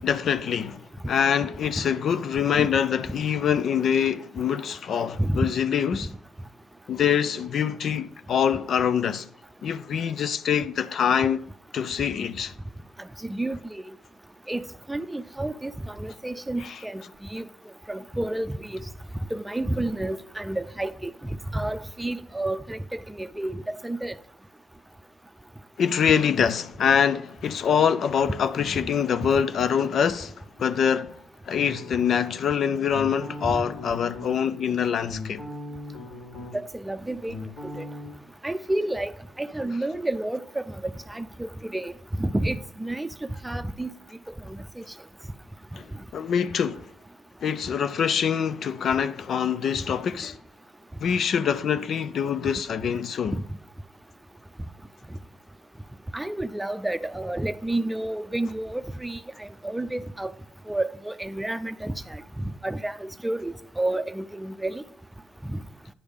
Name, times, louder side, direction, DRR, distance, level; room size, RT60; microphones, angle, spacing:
voice 1, 0.0-6.1 6.9-9.3 9.6-11.4 11.7-12.5 16.6-16.8 25.8-30.3 30.6-31.2 31.4-35.4 45.7-46.9 47.4-50.4 51.0-53.4, left 7 dB, 65° left, 0.4 m, -25 dB
voice 2, 13.2-13.6 14.5-14.6 14.9-17.0 17.3-17.5 17.9-18.8 19.3-21.1 21.5-24.1 33.5-33.6 36.5-37.3 37.8-37.9 38.4-39.1 39.4-43.1 43.4-43.9 44.5-44.8 53.3-53.4 56.1-60.3 60.7-61.9 62.4-64.8 65.5-65.6, right 1 dB, 10° right, 0.6 m, -30 dB
sound 1, 31.5-32.4 32.9-34.3 34.8-36.7 37.0-38.1, left 2 dB, 80° left, 3.3 m, -38 dB
10.0 x 3.5 x 6.4 m
supercardioid pair, 60°, 0 cm